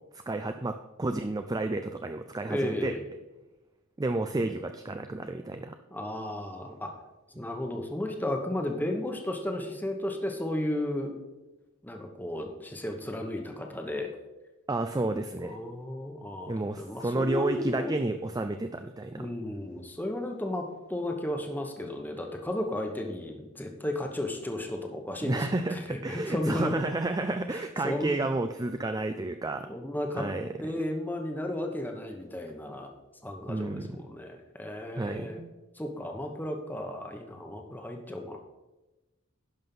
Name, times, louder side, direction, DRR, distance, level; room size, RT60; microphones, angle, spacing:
voice 1, 0.3-2.9 4.0-5.8 14.7-15.6 16.5-19.3 25.2-29.7 30.2-30.8 33.5-33.9 34.9-35.5, right 2 dB, 15° right, 8 dB, 0.4 m, -31 dB
voice 2, 2.5-3.0 5.9-6.9 7.4-11.1 11.8-14.1 15.4-17.9 19.2-26.7 27.5-28.1 29.7-30.3 30.6-32.9 33.2-35.4 35.8-38.4, left 1 dB, 10° left, 2 dB, 1.1 m, -34 dB
11.5 x 5.5 x 5.4 m, 1.1 s
head